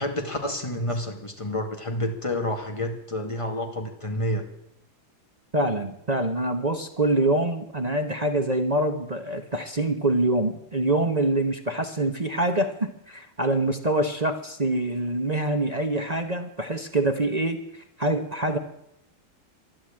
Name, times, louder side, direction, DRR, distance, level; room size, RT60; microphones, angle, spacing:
voice 1, 0.0-4.5, left 1 dB, 15° left, 3 dB, 2.1 m, -29 dB
voice 2, 5.5-18.6, right 1 dB, 30° right, 4 dB, 0.7 m, -25 dB
13.0 x 11.0 x 8.8 m, 0.80 s
omnidirectional pair, 2.3 m